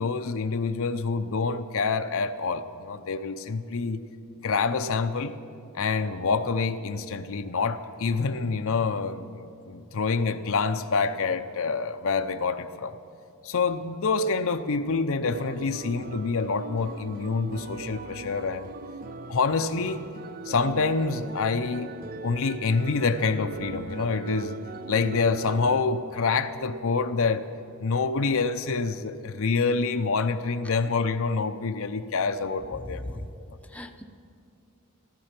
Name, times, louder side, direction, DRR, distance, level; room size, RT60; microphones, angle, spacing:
voice 1, 0.0-4.0 4.4-5.3 5.7-12.9 13.4-18.7 19.3-20.0 20.5-21.9 22.2-24.6 24.9-27.5 27.8-33.2, left 4 dB, 65° left, 9 dB, 0.6 m, -27 dB
sound 1, 15.3-25.8, right 3 dB, 40° right, 0.5 m, -40 dB
voice 2, 32.7-33.3 33.6-34.0, left 1 dB, 5° left, 4 dB, 0.7 m, -38 dB
15.5 x 14.0 x 5.9 m, 2.4 s
head